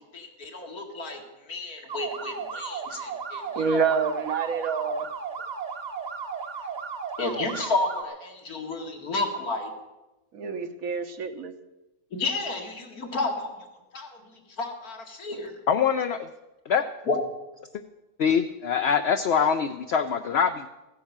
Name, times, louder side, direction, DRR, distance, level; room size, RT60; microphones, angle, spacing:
voice 1, 0.1-1.2 1.5-3.8 7.2-9.7 12.1-13.5 13.9-14.1 14.6-15.6 17.1-17.2, left 3 dB, 80° left, 1 dB, 2.7 m, -31 dB
sound 1, 1.9-8.0, right 6 dB, 35° right, 0.9 m, -35 dB
voice 2, 3.5-5.1 10.3-11.5, right 5 dB, 70° right, 8 dB, 1.5 m, -27 dB
voice 3, 15.7-16.2 16.7-16.8 18.2-20.7, left 7 dB, 55° left, 7 dB, 0.8 m, -23 dB
15.5 x 10.0 x 7.3 m, 1.0 s
omnidirectional pair, 1.6 m